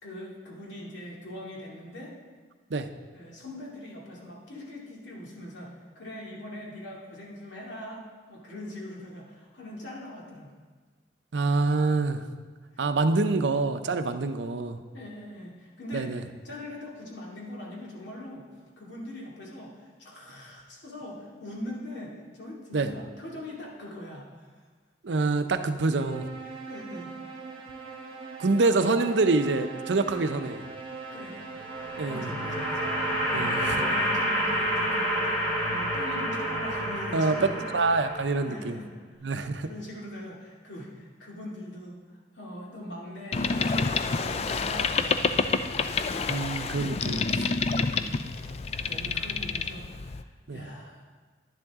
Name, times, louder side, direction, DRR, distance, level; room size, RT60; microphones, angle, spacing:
voice 1, 0.0-2.1 3.1-10.5 14.9-16.1 16.4-18.4 18.8-24.5 26.5-27.1 31.1-31.4 31.7-37.7 38.4-38.9 39.3-42.0 42.3-45.6 47.9-48.5 48.8-51.0, left 1 dB, 90° left, -3 dB, 2.5 m, -41 dB
voice 2, 11.3-12.2 12.8-14.8 15.9-16.2 22.7-22.9 25.0-26.3 28.4-30.6 32.0-32.3 33.3-33.8 37.1-37.4 37.7-38.7 39.2-39.7 46.3-47.5 49.0-49.1 50.5-50.6, right 3 dB, 90° right, 9 dB, 0.6 m, -26 dB
sound 1, 25.9-34.5, right 4 dB, 30° right, 1.1 m, -40 dB
sound 2, 31.5-38.6, equal, 20° left, 3.6 m, -29 dB
Boat Water vehicle, 43.3-50.2, left 4 dB, 35° left, 0.3 m, -28 dB
11.0 x 10.5 x 3.6 m, 1.5 s
head